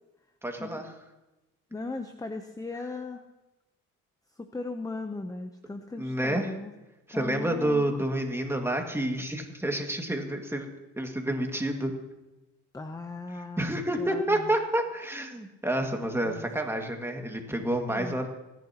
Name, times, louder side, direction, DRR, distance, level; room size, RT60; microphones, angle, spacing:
voice 1, 0.4-0.9 6.0-6.5 7.1-10.7 11.0-11.9 13.6-18.3, right 1 dB, 10° right, 2 dB, 2.0 m, -29 dB
voice 2, 1.7-3.2 4.3-6.7 7.1-7.8 12.7-14.5 16.2-16.4 17.9-18.2, left 3 dB, 10° left, 7 dB, 0.8 m, -38 dB
29.0 x 10.5 x 2.9 m, 1.0 s
cardioid pair, 90°, 30 cm